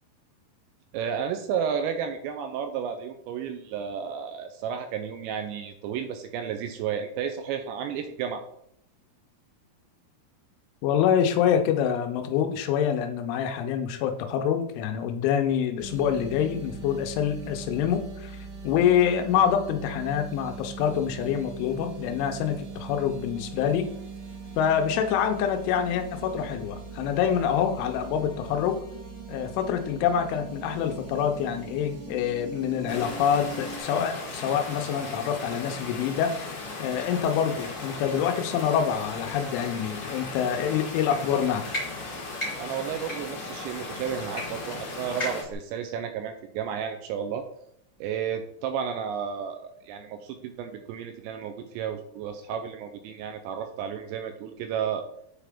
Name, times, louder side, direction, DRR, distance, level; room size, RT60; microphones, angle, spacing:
voice 1, 0.9-8.4 42.6-47.5 48.0-55.0, right 7 dB, 85° right, 7 dB, 2.6 m, -32 dB
voice 2, 10.8-18.4 18.6-23.9 24.6-28.8 29.3-36.4 36.8-41.7, left 8 dB, 85° left, 6 dB, 3.2 m, -26 dB
sound 1, 15.8-33.8, right 5 dB, 65° right, 2.3 m, -41 dB
sound 2, 32.9-45.4, left 3 dB, 50° left, 2.5 m, -37 dB
sound 3, 41.0-41.2 41.7-41.8 42.3-42.5 43.0-43.2 44.3-44.4 44.7-44.8 45.2-45.5, left 1 dB, 15° left, 1.7 m, -32 dB
7.9 x 4.9 x 3.5 m, 0.71 s
omnidirectional pair, 5.4 m